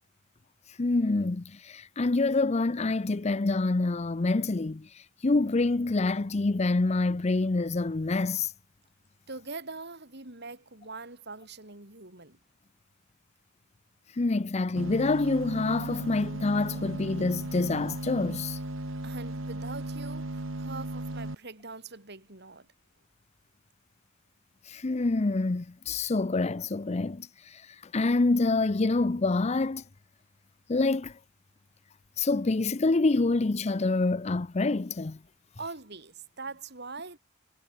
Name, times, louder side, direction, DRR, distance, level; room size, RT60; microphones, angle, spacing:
voice 1, 0.8-8.5 14.2-18.6 24.7-29.8 30.7-31.2 32.2-35.2, left 3 dB, 30° left, 0.6 m, -27 dB
voice 2, 9.3-12.4 19.0-22.7 35.6-37.2, right 3 dB, 55° right, 4.5 m, -42 dB
sound 1, 14.8-21.3, right 1 dB, 70° right, 2.3 m, -36 dB
head